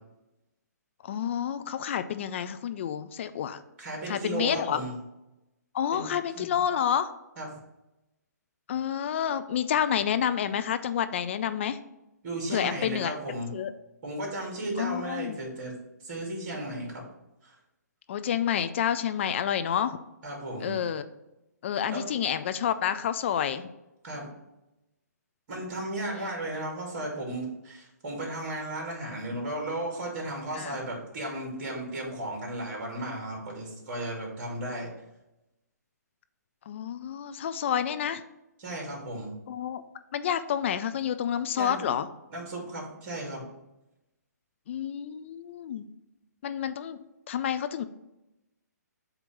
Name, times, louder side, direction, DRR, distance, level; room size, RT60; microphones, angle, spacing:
voice 1, 1.0-3.6 4.1-4.8 5.7-7.1 8.7-11.8 12.5-13.1 13.5-13.7 14.8-15.4 18.1-20.0 20.6-21.0 21.6-23.7 26.1-26.3 29.3-29.4 30.5-30.8 36.7-38.2 39.5-39.8 40.1-42.1 44.7-45.9 46.4-47.0 47.3-47.8, left 9 dB, 45° left, 11 dB, 0.4 m, -29 dB
voice 2, 3.8-4.9 5.9-6.5 7.4-7.5 12.2-13.5 14.0-15.7 16.0-17.0 17.4-17.5 20.2-20.8 21.9-22.1 24.0-24.3 25.5-34.9 38.6-39.3 41.6-41.9 42.3-43.4, right 1 dB, 40° right, -1 dB, 2.5 m, -35 dB
7.9 x 2.9 x 5.4 m, 0.93 s
figure-of-eight pair, 135°, 9 cm